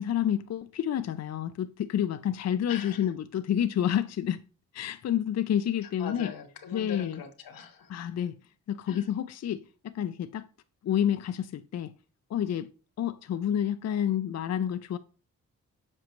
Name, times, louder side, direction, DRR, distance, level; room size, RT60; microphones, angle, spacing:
voice 1, 0.0-4.4 4.7-6.3 6.7-7.2 7.9-8.4 8.7-10.5 10.8-11.9 12.3-12.7 13.0-15.0, left 10 dB, 50° left, 0.5 m, -29 dB
voice 2, 2.7-3.1 5.8-7.9 8.9-9.1, left 7 dB, 80° left, 1.1 m, -41 dB
7.5 x 5.1 x 3.0 m
supercardioid pair, 50°, 34 cm